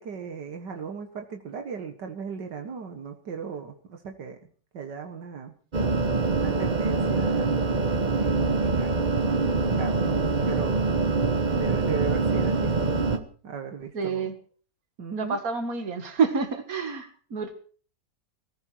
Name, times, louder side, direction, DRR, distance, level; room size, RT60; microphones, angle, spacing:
voice 1, 0.0-4.4 4.7-5.5 6.4-7.5 8.2-10.8 11.5-14.2 15.0-15.4, right 6 dB, 80° right, 4 dB, 2.1 m, -37 dB
sound 1, 5.7-13.2, right 3 dB, 30° right, 1.2 m, -24 dB
voice 2, 13.9-14.3 15.2-17.6, right 5 dB, 55° right, 7 dB, 2.4 m, -28 dB
19.0 x 14.0 x 4.6 m, 0.43 s
omnidirectional pair, 1.9 m